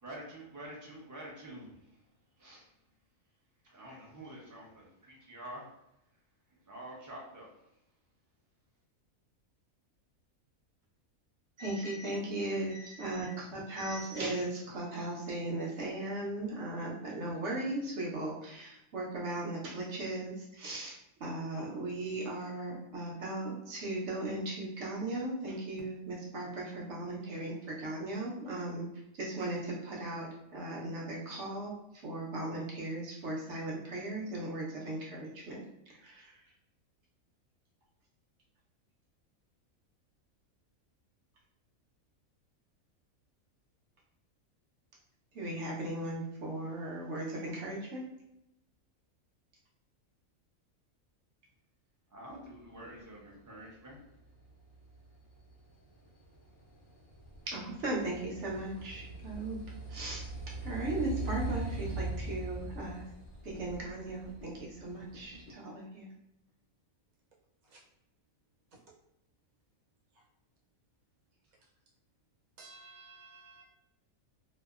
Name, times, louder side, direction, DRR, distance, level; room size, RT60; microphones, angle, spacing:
voice 1, 0.0-2.0 2.4-2.7 3.6-5.7 6.5-7.5 52.1-54.0, right 1 dB, 30° right, -4 dB, 0.3 m, -47 dB
voice 2, 11.6-28.9 29.1-31.7 32.0-36.3 45.3-48.0 57.5-59.6 59.9-60.2 60.6-63.0 63.4-66.1, right 2 dB, 60° right, -3 dB, 0.9 m, -37 dB
sound 1, 54.2-65.5, right 2 dB, 75° left, 0.4 m, -42 dB
voice 3, 72.6-73.6, right 3 dB, 80° right, -3 dB, 1.2 m, -53 dB
2.7 x 2.0 x 2.3 m, 0.85 s
omnidirectional pair, 1.5 m